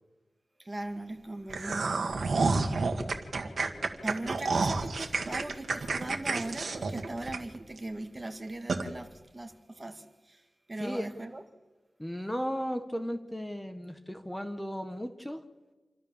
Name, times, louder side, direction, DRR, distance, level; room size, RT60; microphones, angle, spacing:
voice 1, 0.6-1.9 4.0-10.4 10.7-11.4, right 2 dB, 25° right, 6 dB, 2.1 m, -39 dB
sound 1, 1.5-7.8 8.2-8.3 8.7-8.8, right 3 dB, 75° right, 2.0 m, -29 dB
voice 2, 10.8-11.1 12.0-15.4, equal, 10° left, 7 dB, 1.4 m, -35 dB
27.5 x 13.0 x 7.3 m, 1.2 s
wide cardioid pair, 90°, 0 cm